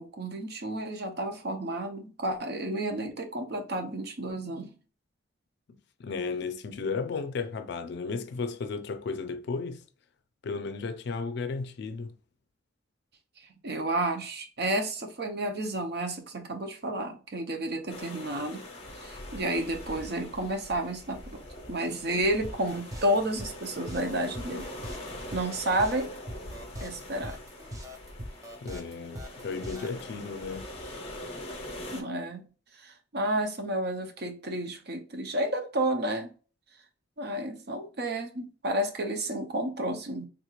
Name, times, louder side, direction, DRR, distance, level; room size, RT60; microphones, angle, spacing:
voice 1, 0.0-4.7 13.6-18.7 19.0-21.4 21.7-24.7 25.3-26.1 26.8-27.4 31.9-32.5 32.8-36.3 37.2-40.3, right 1 dB, 55° right, 0.6 m, -31 dB
voice 2, 6.0-9.8 10.4-12.1 28.6-30.7, left 4 dB, 60° left, 0.4 m, -34 dB
sound 1, 17.9-32.0, left 1 dB, 30° left, 0.7 m, -43 dB
sound 2, 22.4-30.0, equal, 20° right, 0.4 m, -42 dB
3.5 x 2.4 x 3.0 m
head